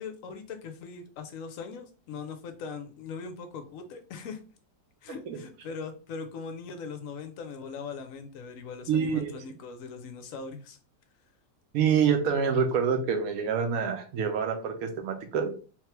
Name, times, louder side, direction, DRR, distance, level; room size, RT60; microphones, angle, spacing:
voice 1, 0.0-4.4 5.0-10.8, left 5 dB, 65° left, 7 dB, 0.9 m, -40 dB
voice 2, 8.9-9.4 11.7-15.5, right 6 dB, 65° right, 5 dB, 1.1 m, -26 dB
3.6 x 3.1 x 3.2 m, 0.37 s
omnidirectional pair, 1.9 m